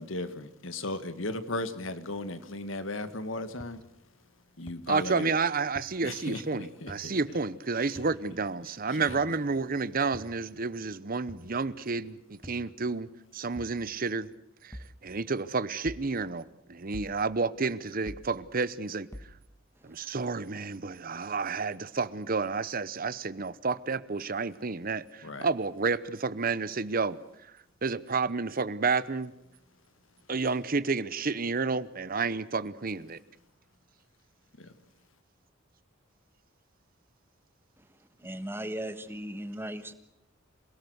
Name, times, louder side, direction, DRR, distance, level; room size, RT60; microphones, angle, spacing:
voice 1, 0.0-3.8 4.6-5.3 6.0-7.1 8.9-9.4 25.2-25.5 34.6-34.7, left 2 dB, 75° left, 1.7 m, -36 dB
sound 1, 3.6-3.7 4.7-4.8 5.8-5.9 6.9-7.0 8.0-8.1 9.1-9.3 10.1-10.4 11.3-11.5 12.4-12.7 13.6-13.8 14.7-14.9 15.9-16.1 16.9-17.2 18.1-18.3 19.1-19.3, left 1 dB, 15° left, 1.7 m, -44 dB
voice 2, 4.9-14.3 14.6-19.1 19.8-27.2 27.8-29.3 30.3-33.2, right 4 dB, 45° right, 0.9 m, -30 dB
voice 3, 38.2-39.9, right 1 dB, 10° right, 1.5 m, -37 dB
27.0 x 18.0 x 8.0 m
head